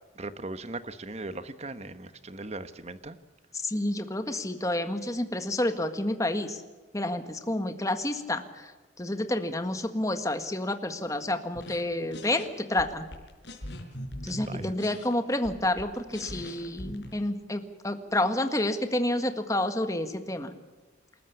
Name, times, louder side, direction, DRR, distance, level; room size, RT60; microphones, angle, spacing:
voice 1, 0.2-3.2 14.4-14.7, right 2 dB, 35° right, 11 dB, 1.2 m, -39 dB
voice 2, 3.6-6.6 6.9-8.4 9.0-13.0 14.2-20.5, left 1 dB, 15° left, 8 dB, 1.7 m, -29 dB
sound 1, 11.5-11.8 12.1-12.5 12.8-17.1, left 1 dB, 60° left, 5.2 m, -41 dB
28.0 x 14.0 x 8.4 m, 1.3 s
head